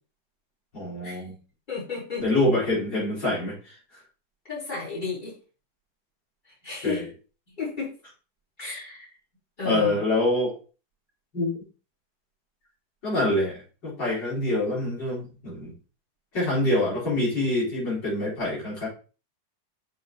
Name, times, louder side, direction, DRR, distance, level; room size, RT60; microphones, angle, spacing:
voice 1, 0.7-1.3 2.2-3.7 6.8-7.1 9.6-10.6 11.3-11.5 13.0-15.7 16.3-18.9, left 2 dB, 70° left, -7 dB, 5.2 m, -25 dB
voice 2, 1.7-2.2 4.5-5.3 6.6-7.0 7.6-7.9 8.6-9.1 9.6-10.0, left 4 dB, 25° left, -7 dB, 4.3 m, -32 dB
6.9 x 6.6 x 3.1 m, 0.35 s
omnidirectional pair, 2.0 m